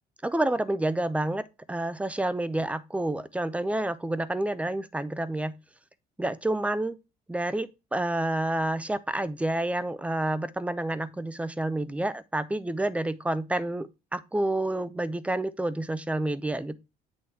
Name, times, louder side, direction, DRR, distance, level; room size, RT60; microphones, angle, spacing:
voice 1, 0.2-5.6 6.2-7.0 7.3-16.8, right 1 dB, 10° right, 0.5 m, -29 dB
8.4 x 3.1 x 5.6 m
cardioid pair, 110°, 17 cm